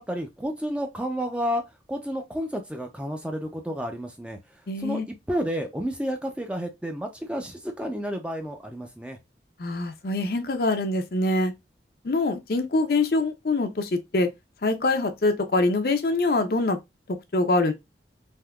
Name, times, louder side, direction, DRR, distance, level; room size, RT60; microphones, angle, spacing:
voice 1, 0.0-1.6 1.9-4.4 4.8-9.2, equal, 5° right, 0.4 m, -31 dB
voice 2, 4.7-5.1 9.6-11.5 12.0-14.3 14.6-16.8 17.3-17.7, left 2 dB, 55° left, 0.5 m, -24 dB
3.6 x 2.7 x 2.2 m
head